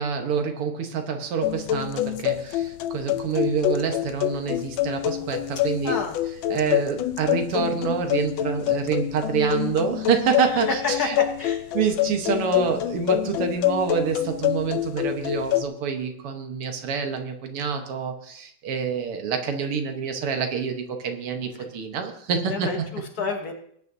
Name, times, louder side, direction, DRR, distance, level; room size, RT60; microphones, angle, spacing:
voice 1, 0.0-6.0 6.5-11.1 11.7-22.9, right 6 dB, 90° right, 5 dB, 2.2 m, -27 dB
sound 1, 1.4-15.6, left 13 dB, 75° left, 1.3 m, -26 dB
voice 2, 5.8-6.2 10.5-11.6 21.6-21.7 22.5-23.5, left 4 dB, 50° left, 3 dB, 1.5 m, -29 dB
19.5 x 9.5 x 2.7 m, 0.67 s
omnidirectional pair, 2.4 m